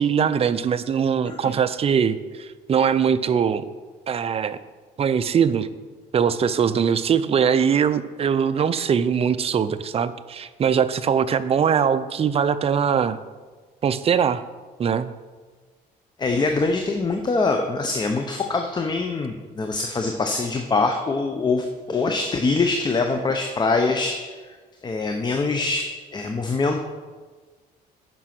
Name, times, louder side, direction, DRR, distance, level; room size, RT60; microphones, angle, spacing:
voice 1, 0.0-3.6 4.1-4.6 5.0-5.7 6.1-13.2 13.8-14.4 14.8-15.1, right 7 dB, 35° right, 13 dB, 0.5 m, -21 dB
voice 2, 16.2-24.4 24.8-26.8, left 3 dB, 25° left, 4 dB, 0.8 m, -24 dB
9.3 x 6.1 x 5.9 m, 1.4 s
cardioid pair, 110°, 17 cm